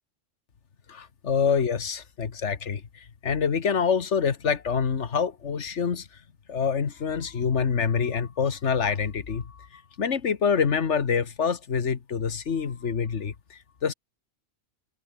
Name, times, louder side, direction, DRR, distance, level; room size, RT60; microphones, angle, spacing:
voice 1, 0.9-6.1 6.5-13.9, left 6 dB, 70° left, 1.7 m, -26 dB
omnidirectional pair, 1.3 m